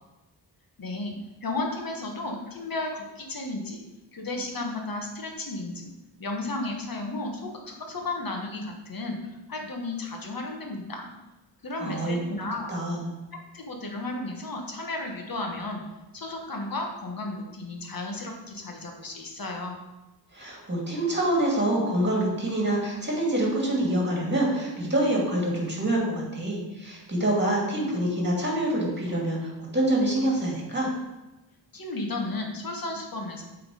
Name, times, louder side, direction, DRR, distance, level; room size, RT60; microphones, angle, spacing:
voice 1, 0.8-1.1 1.4-3.8 4.1-5.9 6.2-9.2 9.5-11.1 11.6-12.7 13.3-15.8 16.1-19.8 31.7-33.4, left 2 dB, 50° left, 2 dB, 1.3 m, -33 dB
voice 2, 11.8-12.2 12.7-13.1 20.3-30.9, right 1 dB, 25° right, -3 dB, 2.1 m, -26 dB
7.7 x 3.7 x 4.8 m, 1.1 s
wide cardioid pair, 125°, 44 cm